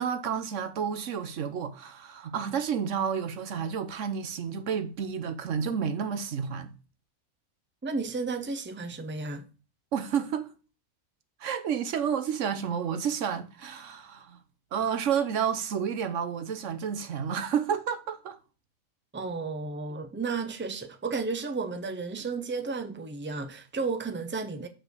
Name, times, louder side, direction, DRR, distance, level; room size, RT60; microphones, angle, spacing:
voice 1, 0.0-6.7 9.9-10.5 11.4-14.4 14.7-18.4 19.9-20.0, right 7 dB, 60° right, 1.1 m, -30 dB
voice 2, 7.8-9.5 19.1-24.7, right 4 dB, 15° right, 0.4 m, -33 dB
6.3 x 5.1 x 6.6 m
omnidirectional pair, 1.5 m